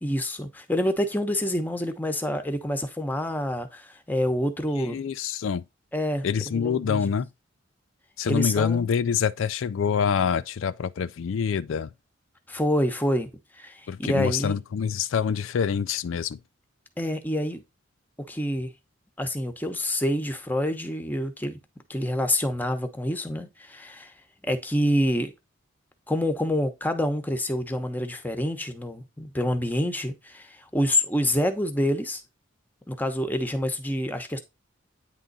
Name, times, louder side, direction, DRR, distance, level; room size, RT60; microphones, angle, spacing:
voice 1, 0.0-5.0 5.9-7.1 8.3-8.9 12.5-13.3 13.6-14.6 17.0-17.6 18.3-18.7 19.2-21.6 21.9-24.1 24.4-25.3 26.1-32.2 32.9-34.4, left 1 dB, 10° left, 0.9 m, -27 dB
voice 2, 4.9-5.6 6.2-7.3 8.2-11.9 13.9-16.4, left 7 dB, 75° left, 0.4 m, -26 dB
9.2 x 3.8 x 4.0 m
head